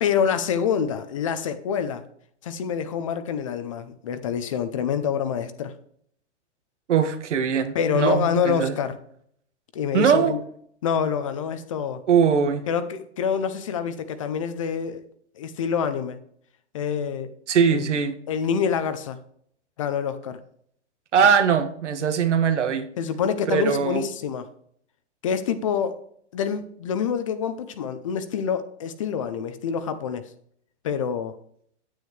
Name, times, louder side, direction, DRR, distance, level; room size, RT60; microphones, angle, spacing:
voice 1, 0.0-2.0 2.4-5.7 7.7-9.0 9.7-10.4 10.8-12.0 12.7-15.0 15.4-16.2 16.7-17.3 17.7-17.8 18.3-19.2 19.8-20.4 23.0-24.5 25.2-26.0 26.3-30.3 30.8-31.3, left 7 dB, 30° left, 11 dB, 0.6 m, -26 dB
voice 2, 6.9-8.7 9.9-10.3 12.1-12.6 17.5-18.2 21.1-22.9 23.5-24.0, right 7 dB, 85° right, 8 dB, 1.7 m, -21 dB
9.7 x 9.5 x 3.2 m, 0.64 s
hypercardioid pair, 170°, 35 cm